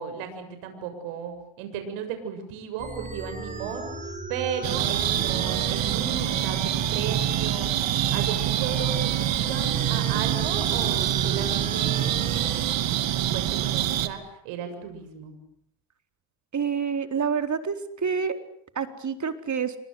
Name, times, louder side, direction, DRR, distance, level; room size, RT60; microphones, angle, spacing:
voice 1, 0.0-3.9 4.3-15.3, right 7 dB, 85° right, 7 dB, 7.2 m, -35 dB
sound 1, 2.8-12.8, right 2 dB, 15° right, 5.4 m, -37 dB
sound 2, 4.6-14.1, right 12 dB, 60° right, 2.8 m, -25 dB
voice 2, 16.5-18.4 18.7-19.8, right 6 dB, 35° right, 7 dB, 4.2 m, -27 dB
29.0 x 25.0 x 8.0 m, 0.66 s
supercardioid pair, 90°, 49 cm